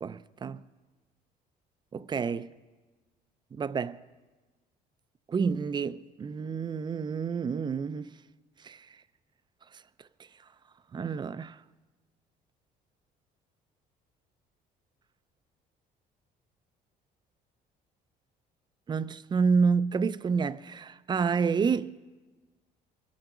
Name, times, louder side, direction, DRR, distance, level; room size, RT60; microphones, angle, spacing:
voice 1, 0.0-0.6 1.9-2.5 3.6-4.0 5.3-8.1 8.6-8.9 10.9-11.6 18.9-22.0, right 5 dB, 25° right, 0.4 m, -29 dB
22.5 x 7.7 x 6.0 m
cardioid pair, 110°, 17 cm